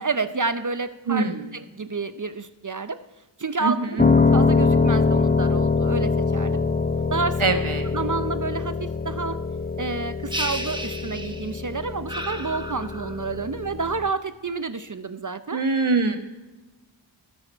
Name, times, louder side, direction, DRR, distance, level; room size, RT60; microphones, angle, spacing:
voice 1, 0.0-1.2 1.5-3.0 3.4-4.0 4.3-6.6 7.1-7.4 7.9-9.4 9.8-15.6, right 4 dB, 40° right, 11 dB, 0.6 m, -29 dB
voice 2, 1.1-1.5 3.6-4.1 7.4-7.9 15.5-16.2, right 3 dB, 80° right, 7 dB, 1.3 m, -23 dB
Piano, 4.0-14.1, left 4 dB, 20° left, 0.7 m, -23 dB
sound 1, 10.3-11.6 12.1-13.3, right 1 dB, 10° right, 1.0 m, -33 dB
15.0 x 9.0 x 4.5 m, 1.2 s
wide cardioid pair, 45°, 49 cm